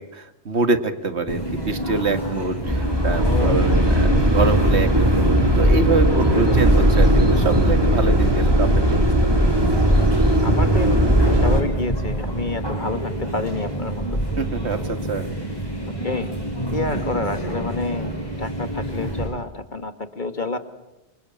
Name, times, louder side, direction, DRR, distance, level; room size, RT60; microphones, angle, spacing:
voice 1, 0.0-9.3 14.4-15.3 16.9-17.3, right 4 dB, 75° right, 9 dB, 2.1 m, -25 dB
sound 1, 1.3-19.3, right 1 dB, 20° left, 8.2 m, -28 dB
sound 2, 2.6-11.6, equal, 20° right, 3.3 m, -18 dB
voice 2, 3.0-4.1 6.3-6.6 10.4-11.0 11.3-14.2 15.9-16.3 16.7-18.1 18.4-20.6, left 3 dB, 45° left, 9 dB, 2.0 m, -29 dB
27.5 x 25.5 x 8.6 m, 0.96 s
omnidirectional pair, 1.1 m